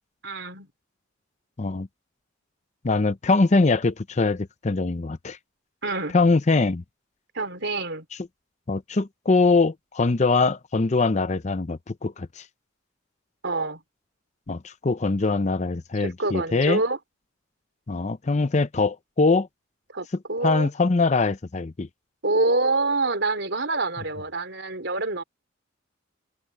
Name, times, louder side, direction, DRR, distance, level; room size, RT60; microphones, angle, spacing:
voice 1, 0.2-0.7 5.8-6.1 7.3-8.1 13.4-13.8 16.0-17.0 19.9-20.7 22.2-25.2, right 2 dB, 60° right, 4.2 m, -26 dB
voice 2, 2.8-5.4 6.1-6.8 8.7-12.4 14.5-16.8 17.9-19.5 20.4-21.9, left 3 dB, 35° left, 0.6 m, -22 dB
open air
head